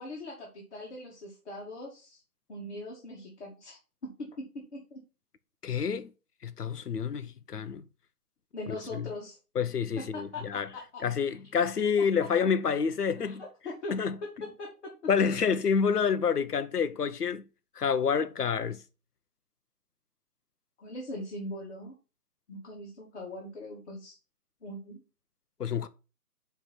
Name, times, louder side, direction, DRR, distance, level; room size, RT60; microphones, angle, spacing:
voice 1, 0.0-2.2 2.5-5.0 8.5-9.4 10.0-11.0 13.2-14.7 20.8-21.9 22.5-24.2 24.6-25.0, left 1 dB, 45° left, 2.6 m, -41 dB
voice 2, 5.6-6.1 6.4-7.8 8.7-9.1 9.5-10.7 11.0-13.4 13.9-14.2 15.1-17.4 17.8-18.8 25.6-25.9, left 6 dB, 80° left, 1.0 m, -28 dB
9.8 x 3.5 x 4.4 m
hypercardioid pair, 160°, 46 cm